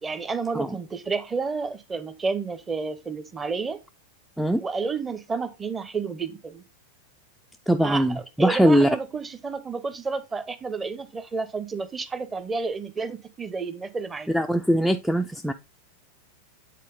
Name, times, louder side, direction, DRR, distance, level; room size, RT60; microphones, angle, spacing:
voice 1, 0.0-3.8 4.6-6.6 7.8-14.3, right 4 dB, 15° right, 0.7 m, -31 dB
voice 2, 7.7-8.9 14.3-15.5, equal, ahead, 0.4 m, -21 dB
8.4 x 4.1 x 3.5 m
figure-of-eight pair, 90°, 0 cm